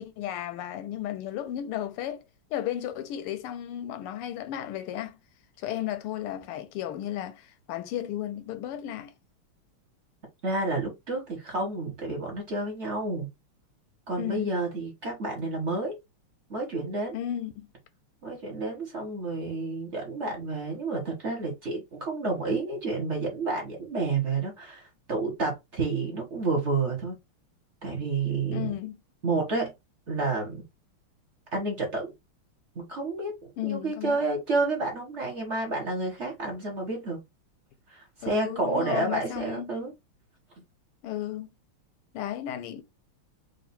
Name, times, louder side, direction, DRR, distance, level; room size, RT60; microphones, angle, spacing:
voice 1, 0.0-2.2 2.5-5.2 5.6-9.1 14.2-14.5 17.1-17.7 28.5-29.0 33.6-34.2 38.2-39.7 41.0-41.5 42.1-42.8, left 12 dB, 90° left, 1.6 m, -34 dB
voice 2, 10.4-13.3 14.1-15.9 16.5-17.1 18.2-27.2 27.8-28.7 29.2-29.7 30.1-30.6 31.5-32.1 32.7-37.2 37.9-39.9, right 3 dB, 35° right, 1.3 m, -30 dB
3.7 x 2.6 x 4.2 m
omnidirectional pair, 2.4 m